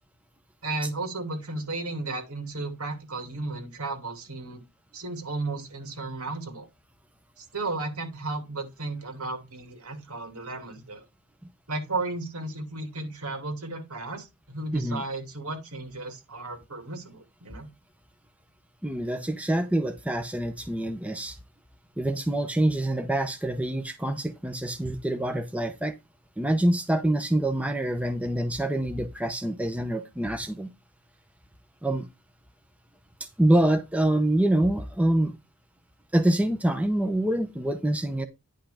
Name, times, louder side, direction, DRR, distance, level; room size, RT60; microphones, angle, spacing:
voice 1, 0.6-4.6 4.9-6.7 7.4-11.1 11.7-17.7, right 2 dB, 80° right, 2.8 m, -34 dB
voice 2, 14.7-15.0 18.8-21.4 22.0-25.9 26.4-30.7 31.8-32.1 33.4-35.3 36.1-38.3, right 1 dB, 5° right, 0.8 m, -26 dB
10.0 x 5.6 x 3.5 m
head